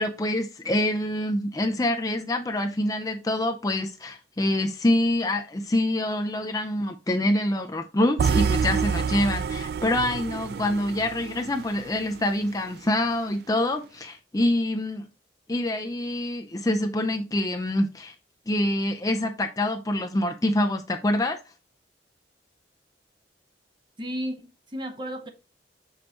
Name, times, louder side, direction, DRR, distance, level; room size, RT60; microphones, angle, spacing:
voice 1, 0.0-15.0 15.5-18.1 18.5-21.4, left 1 dB, 20° left, 0.5 m, -26 dB
sound 1, 8.2-12.3, right 6 dB, 60° right, 0.3 m, -27 dB
voice 2, 24.0-25.3, equal, 25° right, 0.9 m, -33 dB
6.6 x 5.3 x 2.9 m
head